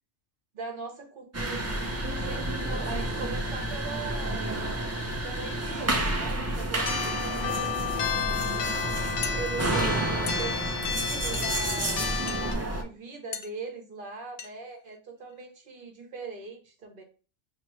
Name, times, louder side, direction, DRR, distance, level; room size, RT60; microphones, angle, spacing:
voice 1, 0.5-4.4 5.2-7.3 9.3-9.9 10.4-12.1 12.6-17.0, right 4 dB, 50° right, 3 dB, 1.1 m, -40 dB
sound 1, 1.3-12.8, right 1 dB, 20° right, 0.4 m, -30 dB
sound 2, 6.8-12.5, left 6 dB, 90° left, 1.0 m, -32 dB
sound 3, 9.2-9.4 10.3-10.5 11.3-11.5 12.3-12.4 13.3-13.5 14.4-14.5 14.9-15.0 15.3-15.5, left 7 dB, 60° left, 0.6 m, -38 dB
3.0 x 3.0 x 4.6 m, 0.36 s
omnidirectional pair, 1.2 m